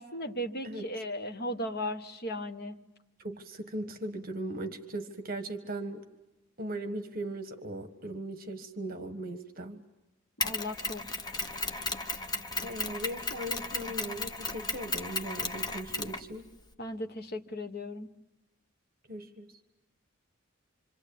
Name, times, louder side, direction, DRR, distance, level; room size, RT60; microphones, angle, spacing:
voice 1, 0.0-2.7 10.4-11.1 16.8-18.1, left 1 dB, 50° left, 7 dB, 1.3 m, -36 dB
voice 2, 3.2-6.0 6.6-9.8 12.6-16.4 19.1-19.5, right 1 dB, 45° right, 7 dB, 1.5 m, -38 dB
Mechanisms, 10.4-16.7, left 3 dB, 20° left, 0.9 m, -35 dB
26.5 x 26.0 x 8.6 m, 0.98 s
head